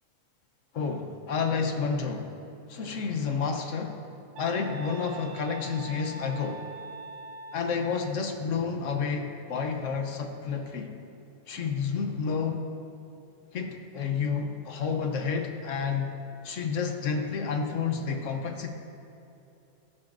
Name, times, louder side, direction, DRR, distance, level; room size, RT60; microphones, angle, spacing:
voice 1, 0.7-2.4 2.7-4.0 4.4-6.7 7.5-10.9 11.5-12.7 13.5-16.1 16.4-18.7, left 5 dB, 60° left, 5 dB, 1.1 m, -30 dB
sound 1, 4.4-8.0, right 3 dB, 85° right, 1.1 m, -43 dB
14.0 x 11.0 x 2.6 m, 2.9 s
omnidirectional pair, 1.6 m